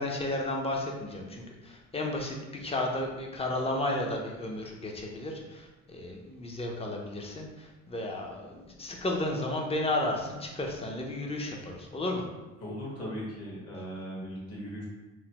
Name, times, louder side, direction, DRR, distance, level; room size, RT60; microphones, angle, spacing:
voice 1, 0.0-12.2, left 1 dB, 20° left, 1 dB, 0.5 m, -33 dB
voice 2, 12.6-14.8, equal, 55° left, -6 dB, 1.4 m, -38 dB
3.1 x 2.0 x 2.9 m, 1.1 s
cardioid pair, 90°, 30 cm